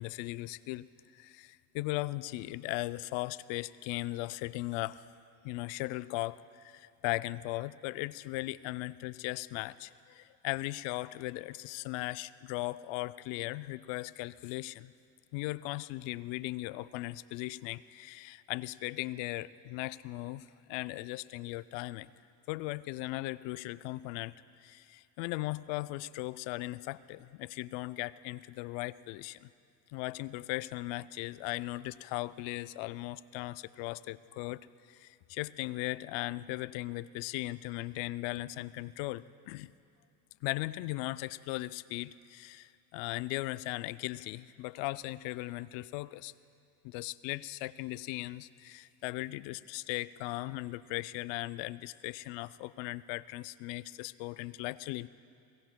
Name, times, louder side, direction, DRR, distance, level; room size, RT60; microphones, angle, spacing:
voice 1, 0.0-5.0 5.4-14.9 15.3-22.1 22.5-24.3 24.6-29.5 29.9-39.7 40.4-46.3 46.8-55.1, left 19 dB, 75° left, 17 dB, 0.5 m, -38 dB
22.0 x 18.0 x 2.2 m, 2.4 s
hypercardioid pair, 60°, 46 cm